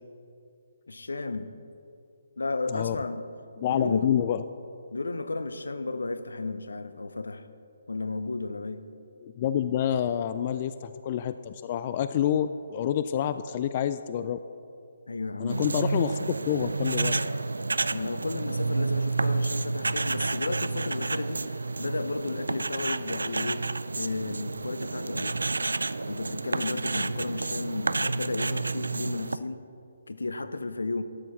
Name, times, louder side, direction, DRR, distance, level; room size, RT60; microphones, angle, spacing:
voice 1, 0.9-1.5 2.4-3.3 3.6-4.1 4.9-7.5 7.9-8.8 15.1-15.8 17.9-23.7 24.0-25.4 26.1-29.6 30.1-31.0, left 3 dB, 75° left, 12 dB, 0.7 m, -33 dB
voice 2, 3.6-4.4 9.2-14.4 15.4-17.2, left 10 dB, 35° left, 12 dB, 0.3 m, -28 dB
sound 1, 15.5-29.4, right 3 dB, 75° right, 0.3 m, -30 dB
12.0 x 6.9 x 5.8 m, 2.6 s
figure-of-eight pair, 140°, 0 cm